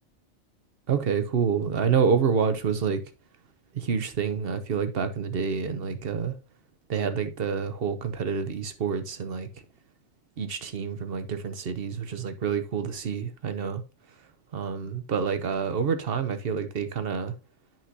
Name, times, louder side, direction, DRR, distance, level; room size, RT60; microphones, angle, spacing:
voice 1, 0.9-3.0 3.7-6.3 6.9-9.5 10.4-13.8 14.5-17.3, right 6 dB, 50° right, 0.9 m, -28 dB
8.9 x 5.9 x 2.7 m
omnidirectional pair, 1.4 m